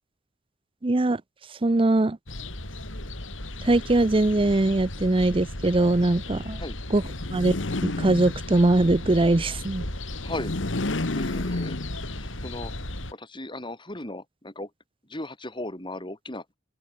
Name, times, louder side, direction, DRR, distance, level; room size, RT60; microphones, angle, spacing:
voice 1, 0.8-1.2 1.6-2.2 3.6-6.6 6.9-7.0 7.3-7.6 7.8-9.9, right 2 dB, 30° right, 0.6 m, -21 dB
sound 1, 2.3-13.1, left 1 dB, 90° left, 7.5 m, -36 dB
sound 2, 7.1-8.8 10.2-12.4, left 2 dB, 70° left, 1.3 m, -31 dB
voice 2, 10.2-10.5 11.1-11.8 12.1-12.7 13.1-14.7 15.1-16.4, left 1 dB, 25° left, 5.8 m, -36 dB
head